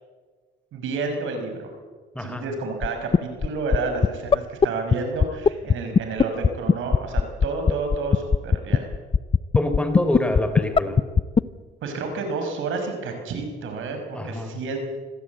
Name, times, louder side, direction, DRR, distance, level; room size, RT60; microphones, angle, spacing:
voice 1, 0.7-1.7 2.2-8.9 11.8-14.8, right 3 dB, 80° right, 5 dB, 5.5 m, -30 dB
sound 1, 2.8-2.9 3.1-3.5 3.7-3.8 4.0-4.1 4.3-4.4 4.6-4.7 4.9-5.0 5.2-11.4, left 5 dB, 25° left, 0.6 m, -15 dB
voice 2, 9.5-11.0 14.1-14.6, left 1 dB, 5° left, 8 dB, 3.9 m, -26 dB
25.5 x 16.0 x 8.4 m, 1.5 s
cardioid pair, 90°, 20 cm